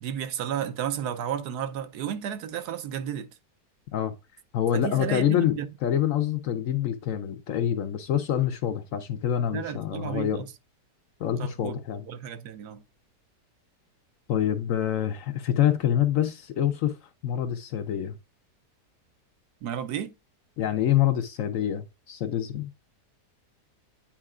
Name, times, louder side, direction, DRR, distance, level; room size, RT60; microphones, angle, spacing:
voice 1, 0.0-3.3 4.7-5.7 9.5-10.5 11.4-11.7 12.1-12.8 19.6-20.1, right 9 dB, 80° right, 1.2 m, -32 dB
voice 2, 4.5-10.4 11.2-12.1 14.3-17.0 17.2-18.1 20.6-22.7, left 10 dB, 65° left, 0.8 m, -26 dB
8.8 x 4.5 x 2.4 m
omnidirectional pair, 1.8 m